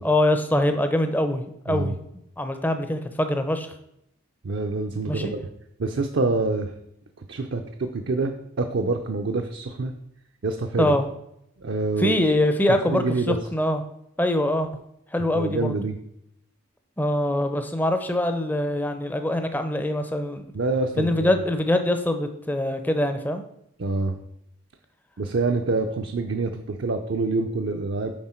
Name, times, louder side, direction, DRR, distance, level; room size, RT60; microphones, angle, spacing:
voice 1, 0.0-1.9 2.4-3.7 5.1-5.3 10.8-11.1 12.0-13.8 14.2-14.7 15.1-15.7 17.0-20.4 21.0-23.4, left 1 dB, 10° left, 7 dB, 0.5 m, -23 dB
voice 2, 4.4-5.4 5.8-6.7 7.3-9.9 10.4-10.9 11.6-12.2 12.8-13.4 15.3-16.0 20.5-21.4 23.8-24.2 25.2-28.1, right 3 dB, 60° right, 4 dB, 0.5 m, -26 dB
7.4 x 4.9 x 4.4 m, 0.79 s
head